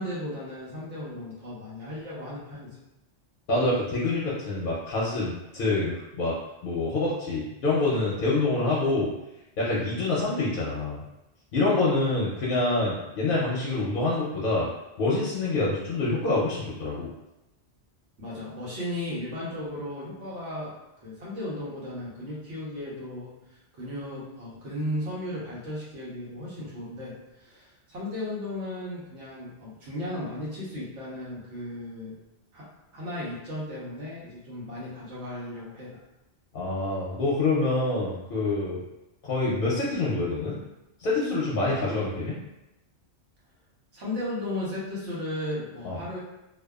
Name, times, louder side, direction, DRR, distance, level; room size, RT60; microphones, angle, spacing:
voice 1, 0.0-2.7 18.2-20.7 21.0-23.3 23.7-32.1 32.5-32.6 32.9-35.9 43.9-46.2, left 1 dB, 85° right, -7 dB, 1.2 m, -35 dB
voice 2, 3.5-6.4 6.6-9.1 9.6-11.0 11.5-14.7 15.0-17.1 36.5-38.8 39.2-40.6 41.0-42.4 45.8-46.0, left 2 dB, 60° left, -6 dB, 0.6 m, -26 dB
2.7 x 2.2 x 2.2 m, 0.93 s
omnidirectional pair, 1.2 m